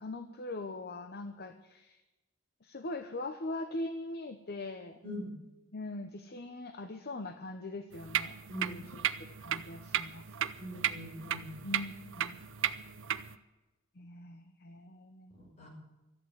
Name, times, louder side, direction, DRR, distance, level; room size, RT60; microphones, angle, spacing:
voice 1, 0.0-2.0 2.6-5.0 5.7-8.4 8.7-10.5 11.6-12.4 14.0-15.3, left 2 dB, 50° left, 8 dB, 0.8 m, -41 dB
sound 1, 7.9-13.4, right 9 dB, 60° right, 0.7 m, -35 dB
voice 2, 8.5-9.1 10.6-11.6 15.3-15.7, equal, 30° left, -2 dB, 6.0 m, -43 dB
13.5 x 8.5 x 9.6 m, 1.0 s
head